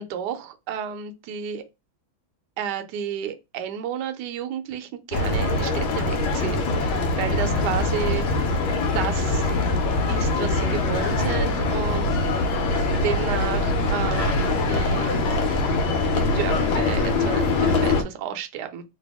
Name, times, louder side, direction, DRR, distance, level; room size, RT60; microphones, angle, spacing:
voice 1, 0.0-1.6 2.6-8.5 8.9-9.5 10.1-12.5 13.0-15.1 16.1-18.8, right 8 dB, 70° right, 1.1 m, -32 dB
sound 1, 5.1-18.0, left 2 dB, 85° left, 1.4 m, -23 dB
3.3 x 2.2 x 3.5 m
omnidirectional pair, 2.2 m